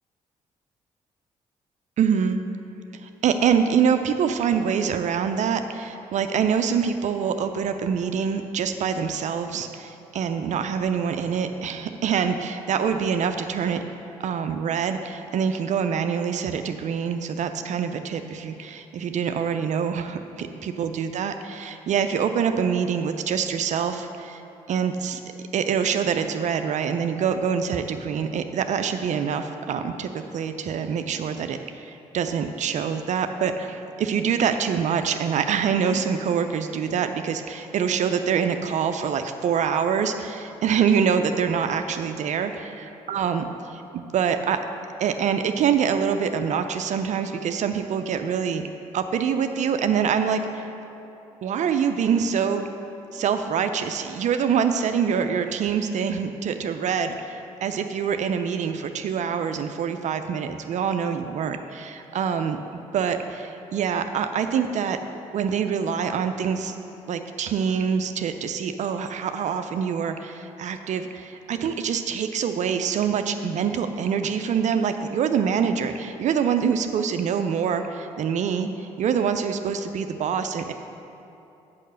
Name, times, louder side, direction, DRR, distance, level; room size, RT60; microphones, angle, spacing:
voice 1, 2.0-2.4 3.0-13.8 14.2-24.4 24.7-25.2 25.5-42.7 43.1-44.6 45.0-48.6 48.9-50.6 51.4-52.7 53.1-65.0 65.3-66.8 67.1-78.7 79.0-80.7, right 7 dB, 60° right, 8 dB, 0.5 m, -25 dB
6.5 x 5.7 x 6.5 m, 2.8 s
hypercardioid pair, 50°, 14 cm